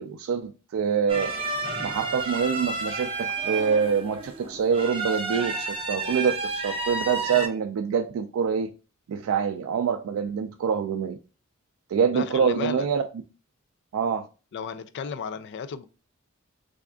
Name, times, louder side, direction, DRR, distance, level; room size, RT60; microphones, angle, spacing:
voice 1, 0.0-1.3 1.8-8.7 9.1-11.2 11.9-13.0 13.9-14.2, right 6 dB, 75° right, 0.3 m, -25 dB
sound 1, 1.1-7.5, right 3 dB, 25° right, 0.6 m, -31 dB
voice 2, 12.1-12.9 14.5-15.9, left 6 dB, 55° left, 0.3 m, -34 dB
3.4 x 2.3 x 3.6 m
head